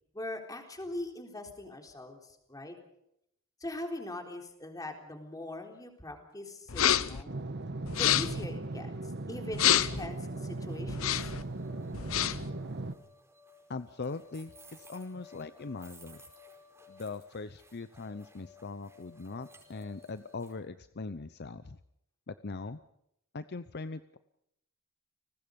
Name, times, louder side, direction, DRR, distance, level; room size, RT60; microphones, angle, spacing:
voice 1, 0.1-2.8 3.6-7.3 7.9-11.3, left 1 dB, 20° left, 3 dB, 3.9 m, -41 dB
sound 1, 6.7-7.2 7.9-8.4 9.5-10.1 10.9-11.4 11.9-12.5, left 10 dB, 85° left, 0.9 m, -27 dB
sound 2, 7.3-12.9, right 2 dB, 55° right, 1.3 m, -38 dB
sound 3, 10.1-20.5, left 2 dB, 15° right, 5.0 m, -57 dB
voice 2, 13.7-16.2 16.9-21.8 22.3-22.8 23.3-24.2, left 3 dB, 50° left, 13 dB, 0.7 m, -41 dB
30.0 x 19.5 x 5.3 m, 0.78 s
head